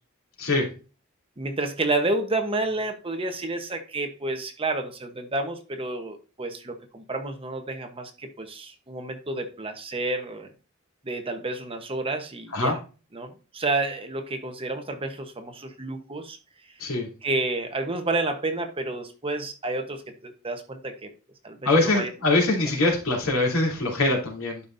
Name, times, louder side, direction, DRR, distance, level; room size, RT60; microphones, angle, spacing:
voice 1, 1.4-10.5 11.0-12.8 13.1-16.4 17.2-21.1 21.4-22.1, right 2 dB, 25° right, 1.0 m, -30 dB
voice 2, 21.6-24.6, left 2 dB, 75° left, 3.2 m, -23 dB
11.5 x 5.2 x 2.6 m
head